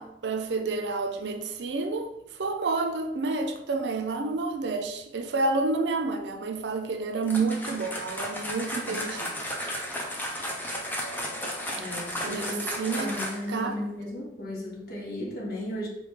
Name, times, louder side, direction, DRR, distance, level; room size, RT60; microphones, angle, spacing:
voice 1, 0.0-2.1 2.4-9.3 12.2-13.1 13.5-13.8, right 3 dB, 70° right, 6 dB, 0.5 m, -29 dB
sound 1, 7.2-13.6, equal, 10° left, 0.7 m, -34 dB
voice 2, 11.8-15.9, left 1 dB, 60° left, -4 dB, 1.3 m, -35 dB
4.0 x 3.1 x 3.5 m, 0.83 s
head